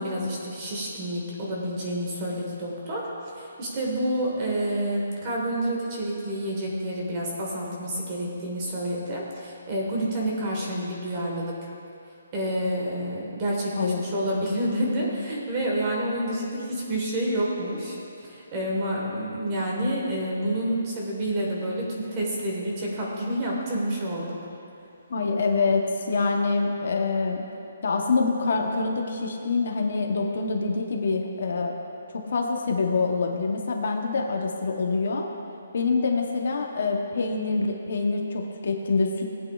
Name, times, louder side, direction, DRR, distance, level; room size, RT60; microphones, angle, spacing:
voice 1, 0.0-3.1 3.4-11.5 12.3-18.0 18.3-24.4, right 1 dB, 20° right, -3 dB, 1.3 m, -28 dB
voice 2, 13.8-14.1 14.3-14.5 25.1-27.4 27.8-31.7 32.1-35.3 35.7-39.3, left 4 dB, 45° left, 2 dB, 0.8 m, -25 dB
18.0 x 8.3 x 2.4 m, 2.6 s
hypercardioid pair, 180°, 0 cm